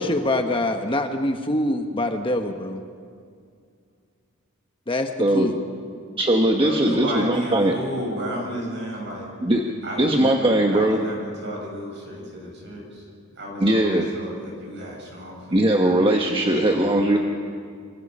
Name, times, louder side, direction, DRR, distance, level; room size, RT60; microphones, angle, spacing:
voice 1, 0.0-2.8 4.9-5.6, left 1 dB, 25° left, 5 dB, 1.2 m, -24 dB
voice 2, 5.2-5.5 6.2-7.8 9.4-9.6 10.0-11.0 13.6-14.0 15.5-17.2, right 1 dB, 25° right, 2 dB, 1.3 m, -19 dB
voice 3, 6.5-9.3 9.8-13.0 13.3-15.7 16.4-17.2, equal, 55° right, -1 dB, 7.7 m, -33 dB
26.5 x 24.5 x 5.6 m, 2.2 s
head